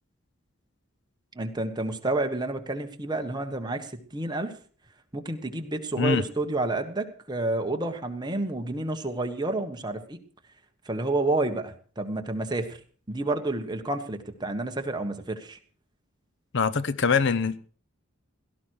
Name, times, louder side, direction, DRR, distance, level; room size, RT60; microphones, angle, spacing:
voice 1, 1.3-4.5 5.1-10.2 10.8-12.8 13.1-15.6, right 2 dB, 20° right, 1.4 m, -29 dB
voice 2, 16.5-17.6, left 5 dB, 60° left, 0.7 m, -23 dB
17.0 x 13.0 x 4.7 m
head